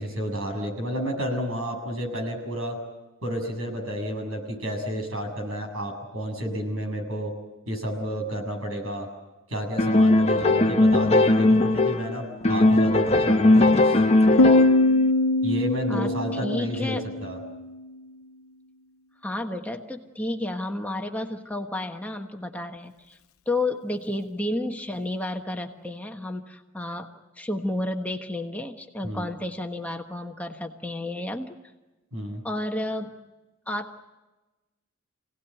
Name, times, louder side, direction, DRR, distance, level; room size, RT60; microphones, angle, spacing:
voice 1, 0.0-2.8 3.2-7.3 7.7-9.1 9.5-14.0 15.4-17.4 29.0-29.3 32.1-32.4, equal, 70° right, 4 dB, 7.5 m, -31 dB
sound 1, 9.8-12.1 12.4-14.9, left 2 dB, 30° left, 1.1 m, -19 dB
Piano, 14.4-17.8, left 2 dB, 75° left, 0.7 m, -22 dB
voice 2, 16.4-17.1 19.2-23.2 23.5-27.1 27.4-31.6 32.4-33.1 33.7-34.0, left 1 dB, 5° left, 2 dB, 1.3 m, -31 dB
28.0 x 18.0 x 9.3 m, 1.1 s
head